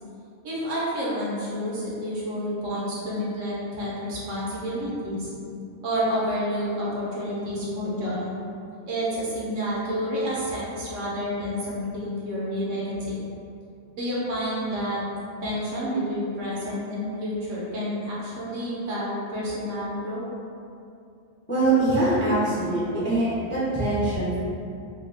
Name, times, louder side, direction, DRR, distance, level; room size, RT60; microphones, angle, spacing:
voice 1, 0.4-5.3 5.8-8.2 8.9-13.2 14.0-15.0 15.4-20.2, equal, 70° right, -7 dB, 1.1 m, -29 dB
voice 2, 21.5-24.4, right 2 dB, 15° left, -11 dB, 0.4 m, -23 dB
3.4 x 2.3 x 2.5 m, 2.5 s
omnidirectional pair, 1.4 m